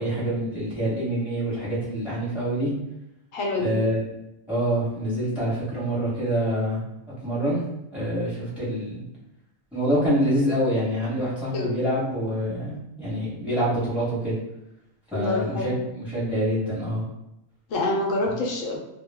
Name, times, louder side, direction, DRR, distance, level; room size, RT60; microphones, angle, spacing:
voice 1, 0.0-2.7 3.6-4.0 4.5-6.8 7.2-7.6 7.9-9.0 9.7-14.4 15.1-17.0 18.2-18.3, equal, ahead, -8 dB, 0.9 m, -26 dB
voice 2, 3.3-3.8 11.5-11.7 15.1-15.8 17.7-18.8, left 2 dB, 70° left, -1 dB, 0.9 m, -27 dB
2.3 x 2.2 x 3.4 m, 0.86 s
omnidirectional pair, 1.5 m